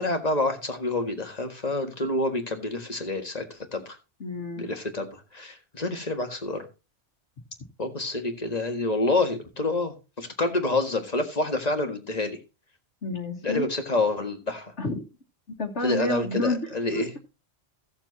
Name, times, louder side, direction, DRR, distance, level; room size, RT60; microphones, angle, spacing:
voice 1, 0.0-4.0 4.6-6.6 7.8-12.4 13.4-14.7 15.8-17.1, left 2 dB, 35° left, 6 dB, 1.7 m, -28 dB
voice 2, 4.2-4.7 13.0-13.7 14.8-15.0 15.6-17.0, left 2 dB, 80° left, -1 dB, 1.8 m, -29 dB
16.5 x 7.3 x 2.8 m, 0.28 s
omnidirectional pair, 1.2 m